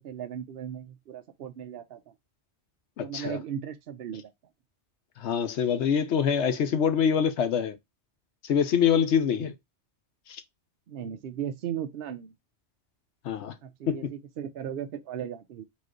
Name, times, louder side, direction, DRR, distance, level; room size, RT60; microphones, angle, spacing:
voice 1, 0.0-2.1 3.0-4.3 9.3-9.4 10.9-12.3 13.6-15.6, right 9 dB, 65° right, 0.8 m, -37 dB
voice 2, 3.0-3.4 5.2-7.8 8.4-9.5 13.2-13.5 13.9-14.1, left 7 dB, 80° left, 1.0 m, -25 dB
4.0 x 3.0 x 3.7 m
omnidirectional pair, 1.2 m